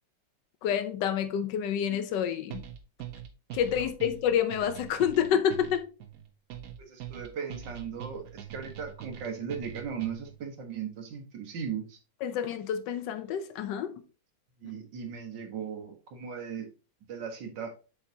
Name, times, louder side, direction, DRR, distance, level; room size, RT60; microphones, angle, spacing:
voice 1, 0.6-2.6 3.5-5.9 12.2-14.0, left 8 dB, 80° left, 1.4 m, -28 dB
sound 1, 2.5-10.4, right 10 dB, 60° right, 1.1 m, -43 dB
voice 2, 6.8-12.0 14.6-16.7 17.1-17.7, right 7 dB, 85° right, 1.9 m, -37 dB
7.0 x 5.1 x 2.7 m
omnidirectional pair, 1.9 m